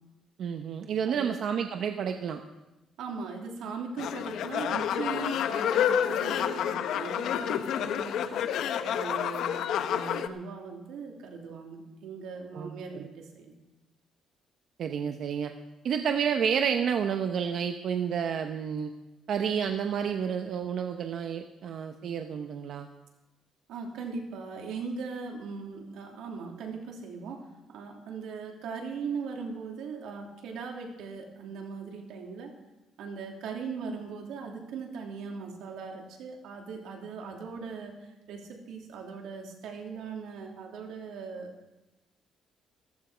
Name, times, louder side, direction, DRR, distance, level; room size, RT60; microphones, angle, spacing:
voice 1, 0.4-2.4 12.5-13.1 14.8-15.5 15.8-18.9 19.3-22.9, right 7 dB, 60° right, 6 dB, 0.9 m, -30 dB
voice 2, 1.1-1.4 3.0-8.4 8.8-13.5 23.7-32.5 33.0-41.5, right 5 dB, 85° right, 1 dB, 3.0 m, -39 dB
sound 1, 4.0-10.3, left 9 dB, 75° left, 0.9 m, -29 dB
14.5 x 14.5 x 5.1 m, 1.0 s
cardioid pair, 135°, 0 cm